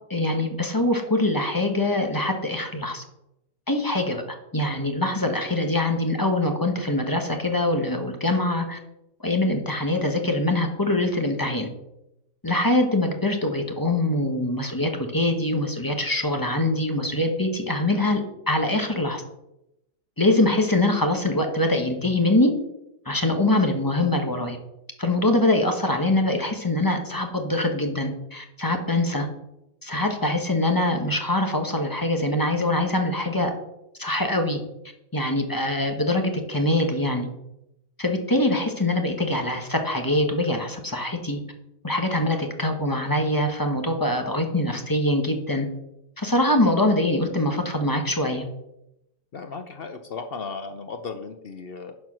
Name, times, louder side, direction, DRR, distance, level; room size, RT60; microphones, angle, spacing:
voice 1, 0.1-3.0 3.7-4.2 4.5-8.8 9.2-11.7 12.4-19.2 20.2-22.5 23.0-24.6 25.0-29.3 29.8-33.5 34.0-34.6 35.1-37.3 38.0-41.4 41.8-45.7 46.2-48.4, left 1 dB, 15° left, 4 dB, 0.8 m, -23 dB
voice 2, 49.3-51.9, left 4 dB, 70° left, 7 dB, 0.5 m, -35 dB
11.5 x 4.5 x 6.1 m, 0.87 s
omnidirectional pair, 1.8 m